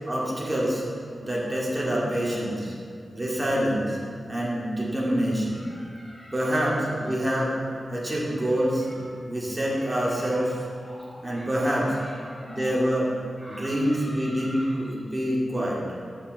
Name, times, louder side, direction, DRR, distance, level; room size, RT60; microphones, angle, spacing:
voice 1, 0.1-0.8 1.2-2.7 3.1-4.0 4.3-5.7 6.3-7.5 7.9-8.9 9.3-10.6 11.2-12.0 12.5-13.1 13.5-15.8, equal, 25° right, -4 dB, 2.1 m, -26 dB
voice 2, 1.1-2.0 5.5-6.8 8.2-9.4 9.7-12.8 13.4-14.8, equal, 5° left, -6 dB, 1.5 m, -46 dB
10.0 x 5.8 x 4.6 m, 2.3 s
wide cardioid pair, 85°, 0 cm